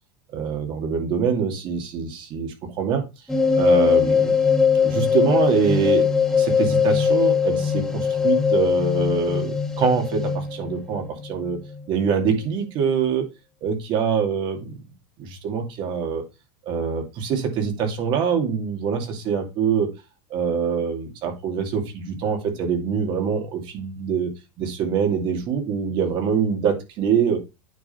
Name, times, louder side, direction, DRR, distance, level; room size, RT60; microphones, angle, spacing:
voice 1, 0.3-3.1 3.6-4.3 4.8-6.1 6.3-11.6 11.9-13.3 13.6-14.7 15.2-16.2 16.7-19.9 20.3-24.3 24.6-27.4, right 6 dB, 50° right, 4 dB, 2.6 m, -24 dB
sound 1, 3.3-11.8, left 6 dB, 5° left, 1.5 m, -21 dB
9.2 x 3.8 x 4.5 m, 0.25 s
supercardioid pair, 110°, 10 cm